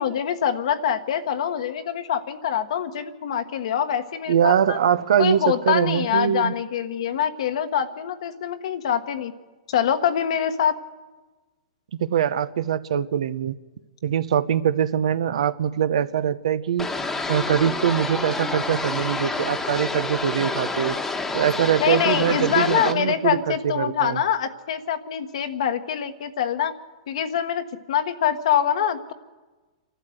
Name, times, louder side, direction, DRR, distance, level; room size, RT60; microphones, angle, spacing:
voice 1, 0.0-4.8 5.2-9.3 9.7-10.8 21.8-26.7 27.1-29.1, left 9 dB, 70° left, 7 dB, 1.3 m, -24 dB
voice 2, 4.3-6.5 12.0-13.6 14.0-16.9 17.3-21.0 21.3-24.2, right 9 dB, 75° right, 14 dB, 0.8 m, -23 dB
sound 1, 16.8-22.9, left 3 dB, 10° left, 1.2 m, -28 dB
27.0 x 12.5 x 7.9 m, 1.2 s
hypercardioid pair, 135°, 3 cm